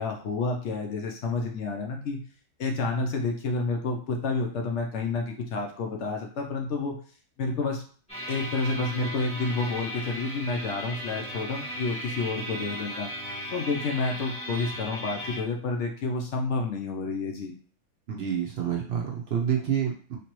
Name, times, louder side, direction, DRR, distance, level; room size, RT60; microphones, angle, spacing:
voice 1, 0.0-2.2 2.6-7.0 7.4-7.8 8.3-13.1 13.5-17.5, left 3 dB, 65° left, 2 dB, 0.8 m, -29 dB
sound 1, 8.1-15.4, equal, 5° left, 1.2 m, -37 dB
voice 2, 18.1-20.2, right 8 dB, 60° right, -1 dB, 0.7 m, -28 dB
3.3 x 2.8 x 3.0 m, 0.43 s
omnidirectional pair, 1.4 m